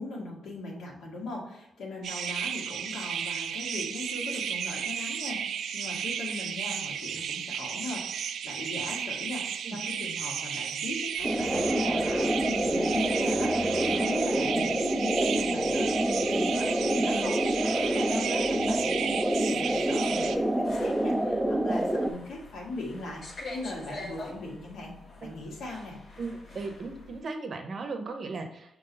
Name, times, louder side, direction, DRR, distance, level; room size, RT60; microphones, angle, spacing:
voice 1, 0.0-24.9 25.2-26.0, left 2 dB, 85° left, -2 dB, 1.9 m, -39 dB
sound 1, 2.0-20.4, right 8 dB, 85° right, 0.4 m, -34 dB
sound 2, 11.2-27.2, left 2 dB, 45° left, 1.2 m, -46 dB
sound 3, 11.2-22.1, right 1 dB, 5° right, 0.3 m, -27 dB
voice 2, 26.2-28.8, right 3 dB, 40° right, 5 dB, 0.7 m, -37 dB
6.1 x 3.9 x 4.0 m, 0.86 s
wide cardioid pair, 175°, 0 cm